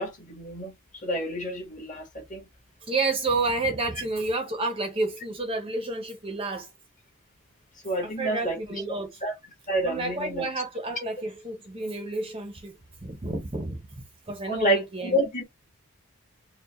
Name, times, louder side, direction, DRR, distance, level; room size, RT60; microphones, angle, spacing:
voice 1, 0.0-2.5 7.8-8.6 9.2-9.3 9.7-10.5 14.5-15.4, right 1 dB, 35° left, 1.7 m, -29 dB
voice 2, 2.9-6.7 8.0-9.1 9.8-12.7 13.0-15.2, right 2 dB, 25° right, 0.8 m, -30 dB
4.6 x 2.3 x 3.1 m
head